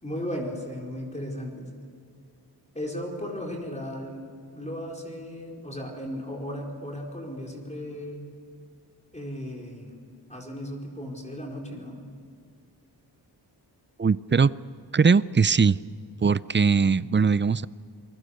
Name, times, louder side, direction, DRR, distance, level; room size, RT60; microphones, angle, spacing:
voice 1, 0.0-1.7 2.7-4.3 4.5-8.2 9.1-10.0 10.3-12.0, equal, 15° left, -1 dB, 4.7 m, -35 dB
voice 2, 14.0-14.5 14.9-15.8 16.2-17.7, right 5 dB, 30° right, 18 dB, 0.5 m, -20 dB
27.5 x 21.5 x 6.6 m, 2.3 s
wide cardioid pair, 80°, 41 cm